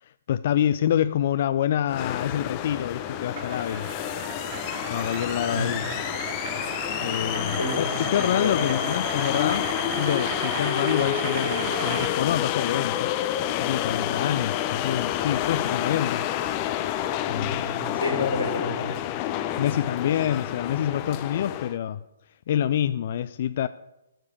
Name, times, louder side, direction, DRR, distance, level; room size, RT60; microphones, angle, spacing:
voice 1, 0.0-3.9 4.9-5.8 7.0-13.1 13.6-16.2 17.3-17.6 18.2-18.3 19.6-22.0 22.5-23.7, left 10 dB, 45° left, 13 dB, 0.3 m, -27 dB
sound 1, 1.9-21.7, left 12 dB, 30° left, 0.8 m, -29 dB
sound 2, 2.6-12.1, right 9 dB, 35° right, 1.0 m, -36 dB
voice 2, 7.5-8.7 17.3-18.9, left 1 dB, 85° left, 2 dB, 4.5 m, -31 dB
13.5 x 4.8 x 8.3 m, 0.93 s
figure-of-eight pair, 130°, 0 cm